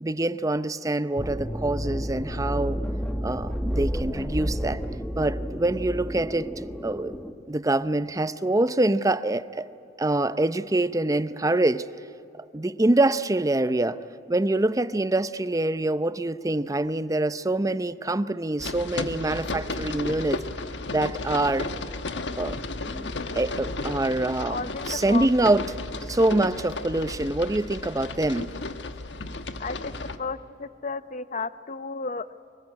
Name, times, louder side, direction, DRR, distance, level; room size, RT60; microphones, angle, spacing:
voice 1, 0.0-2.8 3.2-4.8 5.1-7.2 7.5-9.7 10.0-11.9 12.5-14.0 14.3-20.4 20.9-21.7 22.4-22.6 22.9-23.1 23.3-25.7 26.1-28.5, right 2 dB, 20° right, 0.6 m, -25 dB
sound 1, 1.2-7.3, equal, 5° left, 1.3 m, -31 dB
sound 2, 18.6-30.2, left 2 dB, 85° left, 1.3 m, -34 dB
voice 2, 24.5-25.3 29.6-32.3, left 4 dB, 45° left, 0.7 m, -33 dB
25.0 x 22.5 x 9.7 m
head